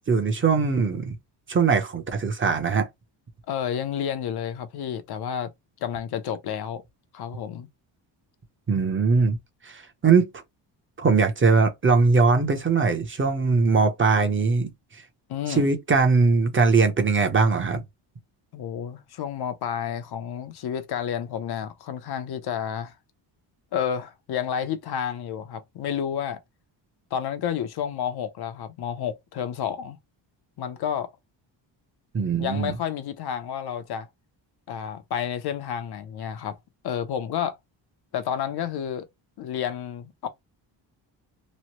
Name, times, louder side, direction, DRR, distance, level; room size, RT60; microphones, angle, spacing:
voice 1, 0.1-1.1 1.5-2.9 8.7-9.4 9.7-10.3 11.0-14.7 15.5-17.8 32.1-32.7, right 4 dB, 25° right, 0.7 m, -21 dB
voice 2, 3.5-5.5 5.8-6.8 7.1-7.7 15.3-15.7 18.5-22.9 23.7-26.4 27.1-30.0 30.6-31.1 32.2-34.1 34.7-36.6 36.8-37.6 38.1-39.1 39.4-40.3, left 8 dB, 60° left, 0.6 m, -30 dB
3.1 x 2.1 x 2.9 m
cardioid pair, 105°, 45 cm